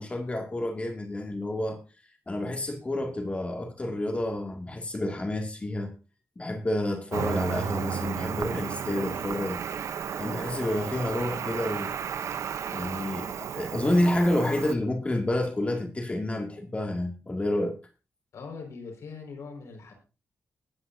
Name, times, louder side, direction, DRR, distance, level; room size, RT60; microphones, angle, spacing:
voice 1, 0.0-1.8 2.3-5.9 6.4-9.6 10.2-11.9 12.7-17.8, left 1 dB, 25° left, 2.3 m, -29 dB
Cricket, 7.1-14.7, right 8 dB, 80° right, 0.9 m, -33 dB
voice 2, 18.3-19.9, left 4 dB, 80° left, 5.3 m, -41 dB
21.0 x 9.6 x 2.7 m
cardioid pair, 100°, 5 cm